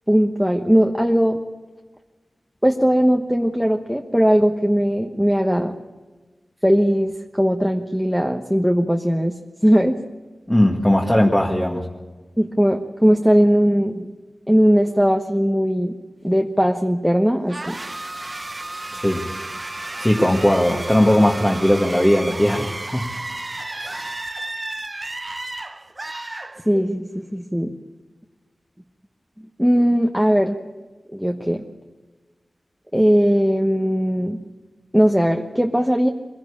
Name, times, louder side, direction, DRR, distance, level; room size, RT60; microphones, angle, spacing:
voice 1, 0.1-1.4 2.6-5.7 6.6-9.3 9.6-10.0 12.4-14.1 14.5-15.9 16.2-17.8 26.7-27.7 29.6-30.6 31.1-31.6 32.9-34.4 34.9-36.1, equal, ahead, 2 dB, 1.2 m, -18 dB
voice 2, 10.5-11.8 18.9-19.2 20.0-23.1 23.8-24.0, left 1 dB, 15° left, -1 dB, 2.0 m, -18 dB
sound 1, 17.5-27.0, right 2 dB, 30° right, 0.8 m, -32 dB
23.0 x 16.5 x 8.6 m, 1.3 s
wide cardioid pair, 85°, 0 cm